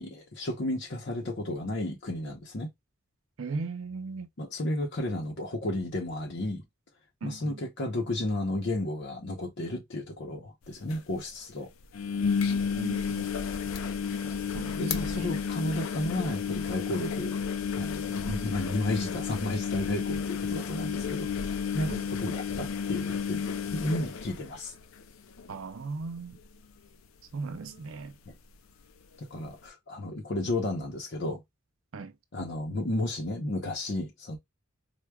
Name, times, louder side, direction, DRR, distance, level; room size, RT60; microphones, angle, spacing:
voice 1, 0.0-2.7 4.4-6.6 7.2-11.7 14.7-17.4 17.7-23.4 23.7-24.7 28.3-28.4 29.2-31.4 32.3-34.4, left 1 dB, 55° left, 0.7 m, -33 dB
voice 2, 3.4-4.3 7.2-7.6 12.5-13.3 14.5-15.3 18.3-18.5 21.9-22.1 25.5-26.4 27.3-28.2 31.9-32.1, right 4 dB, 75° right, 0.5 m, -38 dB
sound 1, 10.6-10.7 10.9-11.0 11.9-25.0 25.4-25.8 26.1-26.2 28.0-28.1, left 6 dB, 90° left, 0.5 m, -32 dB
4.5 x 2.2 x 2.2 m
head